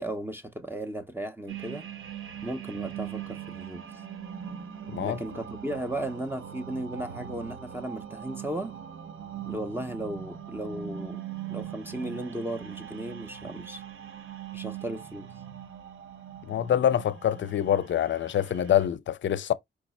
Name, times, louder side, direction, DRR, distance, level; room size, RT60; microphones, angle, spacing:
voice 1, 0.0-1.9 2.4-3.8 5.0-8.7 9.5-11.2 11.5-13.8 14.5-15.3, right 1 dB, 10° right, 0.6 m, -35 dB
sound 1, 1.5-18.9, right 9 dB, 80° right, 0.8 m, -41 dB
voice 2, 16.5-19.5, left 10 dB, 65° left, 0.5 m, -25 dB
4.8 x 2.1 x 4.1 m
cardioid pair, 65°, 21 cm